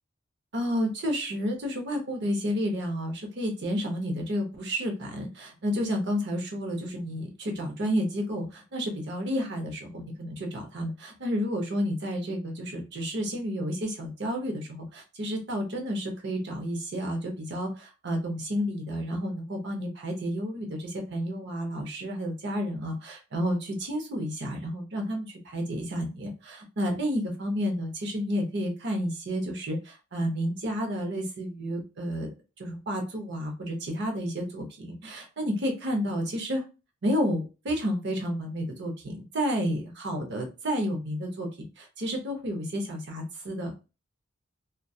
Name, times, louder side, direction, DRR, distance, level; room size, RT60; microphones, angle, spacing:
voice 1, 0.5-36.6 37.0-43.7, equal, 60° right, 3 dB, 0.7 m, -31 dB
2.6 x 2.3 x 2.3 m, 0.31 s
head